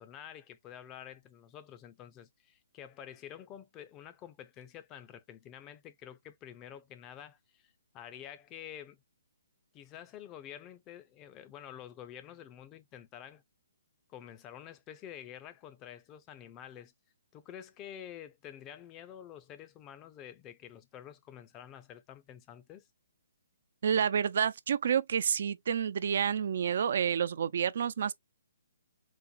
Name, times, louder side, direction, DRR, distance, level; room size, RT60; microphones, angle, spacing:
voice 1, 0.0-9.0 9.7-13.4 14.1-16.9 17.3-22.8, left 10 dB, 25° left, 0.5 m, -49 dB
voice 2, 23.8-28.1, right 8 dB, 55° right, 0.4 m, -29 dB
4.1 x 2.1 x 2.5 m
figure-of-eight pair, 135°, 0 cm